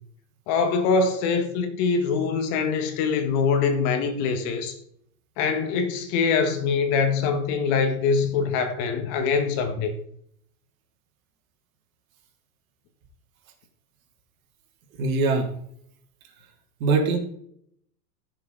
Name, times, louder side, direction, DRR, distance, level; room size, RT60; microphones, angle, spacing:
voice 1, 0.5-4.8 5.4-9.9, left 5 dB, 45° left, 1.8 m, -23 dB
voice 2, 15.0-15.5 16.8-17.2, right 4 dB, 60° right, 3.0 m, -22 dB
15.0 x 6.8 x 4.0 m
supercardioid pair, 145°, 46 cm